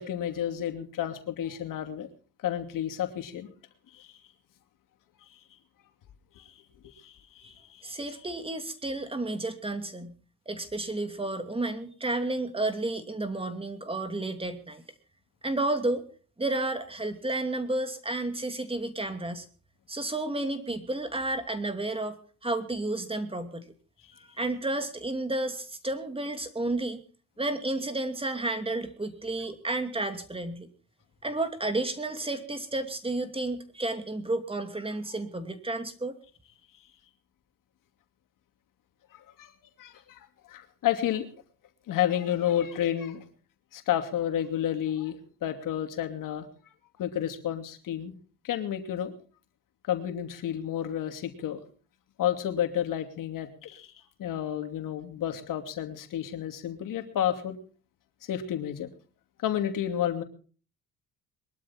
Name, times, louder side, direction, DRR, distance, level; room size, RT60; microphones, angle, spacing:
voice 1, 0.0-2.1 2.4-3.5 3.9-4.2 6.4-6.5 6.8-8.0 39.1-39.5 39.8-41.3 41.9-43.2 43.7-46.5 47.0-48.1 48.4-49.1 49.9-51.6 52.2-53.9 54.2-57.6 58.3-58.9 59.4-60.2, left 10 dB, 70° left, 6 dB, 2.7 m, -31 dB
voice 2, 7.8-10.1 10.5-14.8 15.4-16.0 16.4-19.4 19.9-22.2 22.4-23.6 24.4-27.0 27.4-30.7 31.2-36.2, right 2 dB, 15° right, 8 dB, 2.6 m, -31 dB
22.5 x 12.5 x 4.4 m, 0.40 s
cardioid pair, 90°, 33 cm